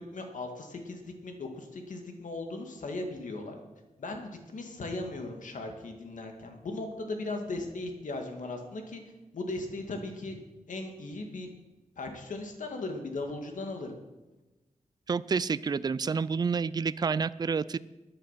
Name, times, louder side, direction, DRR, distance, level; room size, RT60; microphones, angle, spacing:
voice 1, 0.0-3.6 4.0-9.0 9.3-10.4 10.7-11.5 12.0-14.0, left 2 dB, 75° left, 4 dB, 2.1 m, -37 dB
voice 2, 15.1-17.8, right 5 dB, 30° right, 17 dB, 0.4 m, -29 dB
13.5 x 10.0 x 5.7 m, 1.1 s
wide cardioid pair, 130°, 13 cm